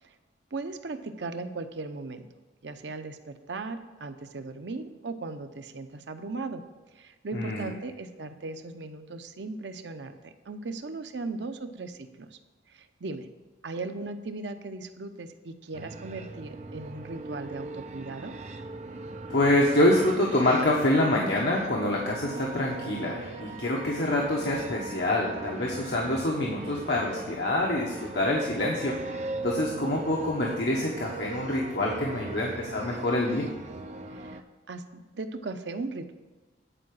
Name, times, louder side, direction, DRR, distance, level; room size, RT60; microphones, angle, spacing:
voice 1, 0.5-2.3 2.6-6.6 6.9-12.4 12.7-13.3 13.6-18.3 34.1-34.4 34.7-36.1, right 3 dB, 85° right, 8 dB, 0.7 m, -38 dB
voice 2, 7.3-7.7 19.3-28.9 29.4-33.5, left 1 dB, 75° left, -2 dB, 1.2 m, -26 dB
sound 1, 15.7-34.4, right 2 dB, 40° right, 0.6 m, -39 dB
10.0 x 4.8 x 7.6 m, 1.3 s
head